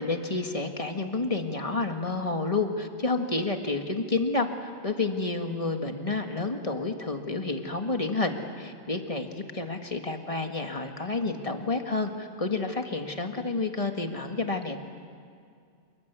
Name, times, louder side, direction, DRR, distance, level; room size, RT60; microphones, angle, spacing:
voice 1, 0.0-14.8, left 3 dB, 30° left, 4 dB, 1.9 m, -30 dB
27.5 x 24.0 x 8.3 m, 2.3 s
omnidirectional pair, 1.3 m